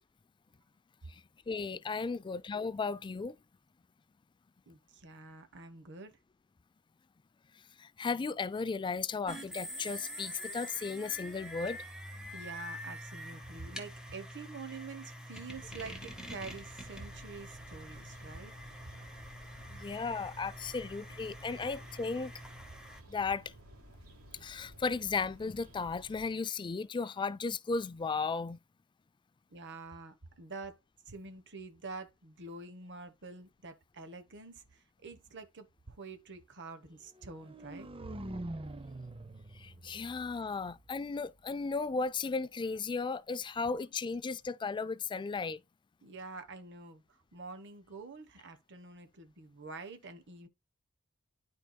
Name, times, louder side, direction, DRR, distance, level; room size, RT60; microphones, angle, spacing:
voice 1, 1.5-3.4 7.8-11.8 19.7-22.3 23.1-23.4 24.4-28.6 39.6-45.6, left 4 dB, 20° left, 0.3 m, -35 dB
voice 2, 4.7-6.2 12.3-18.5 29.5-30.8 31.1-37.9 46.0-50.5, right 3 dB, 55° right, 1.1 m, -47 dB
sound 1, 9.3-23.0, equal, 5° right, 1.6 m, -46 dB
sound 2, 15.5-26.3, equal, 85° right, 3.1 m, -55 dB
sound 3, 37.2-41.2, right 1 dB, 25° right, 0.7 m, -45 dB
12.0 x 4.7 x 2.2 m
head